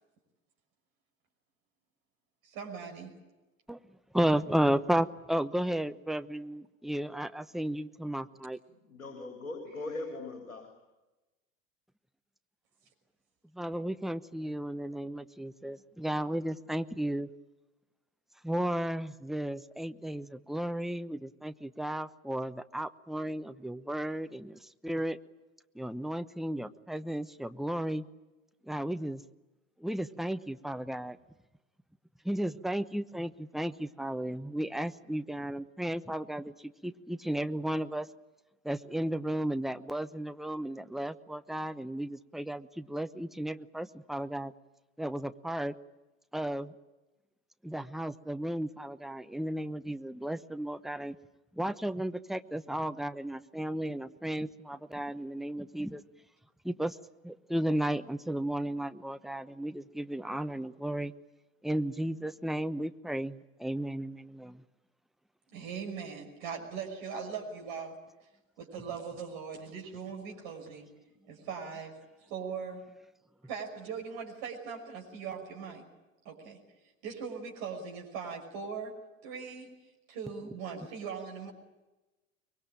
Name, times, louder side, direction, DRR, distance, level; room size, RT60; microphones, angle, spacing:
voice 1, 2.5-3.1 65.5-68.0 68.6-70.9 71.3-71.9 72.3-72.8 73.5-75.8 76.2-76.6 77.0-78.9 79.2-79.8 80.1-81.5, right 6 dB, 55° right, 1 dB, 6.0 m, -40 dB
voice 2, 4.1-8.6 13.5-17.3 18.4-25.2 25.7-28.0 28.6-29.2 29.8-31.2 32.2-38.1 38.6-44.5 45.0-45.7 46.3-46.7 47.6-51.2 51.5-56.0 56.6-57.0 57.2-61.1 61.6-64.6, right 1 dB, ahead, 11 dB, 0.9 m, -34 dB
voice 3, 8.8-10.7, left 2 dB, 85° left, 3 dB, 3.5 m, -40 dB
24.5 x 23.0 x 9.0 m, 1.1 s
hypercardioid pair, 80°, 41 cm